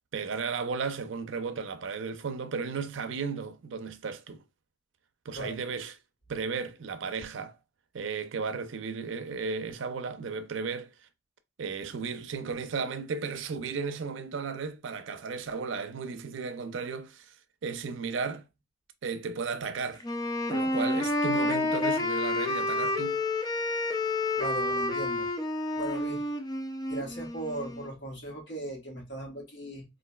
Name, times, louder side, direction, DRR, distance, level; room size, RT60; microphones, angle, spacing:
voice 1, 0.1-4.4 5.3-5.9 6.3-7.6 7.9-10.9 11.6-17.3 17.6-18.5 19.0-20.0 20.5-23.2, right 5 dB, 80° right, 0.5 m, -34 dB
Wind instrument woodwind instrument, 20.0-27.9, left 2 dB, 20° left, 0.4 m, -29 dB
voice 2, 24.4-25.3 25.7-26.2 26.9-29.8, right 1 dB, 60° left, 1.2 m, -38 dB
4.0 x 2.5 x 2.2 m
head